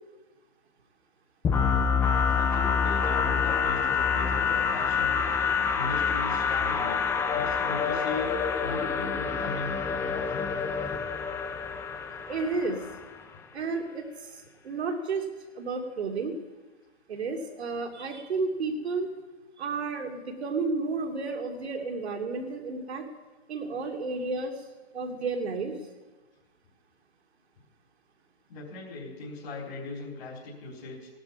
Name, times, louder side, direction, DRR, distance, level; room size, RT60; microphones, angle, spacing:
sound 1, 1.4-13.2, left 6 dB, 5° left, 0.6 m, -27 dB
voice 1, 2.3-5.2 5.7-7.0 7.3-8.3 8.6-10.5 28.5-31.1, left 3 dB, 50° left, -4 dB, 4.2 m, -39 dB
voice 2, 12.3-12.8 13.5-15.3 15.5-16.4 17.1-19.1 19.6-23.0 23.5-24.7 24.9-25.8, right 4 dB, 70° right, 3 dB, 2.9 m, -32 dB
17.5 x 11.5 x 5.8 m, 1.2 s
hypercardioid pair, 140°, 34 cm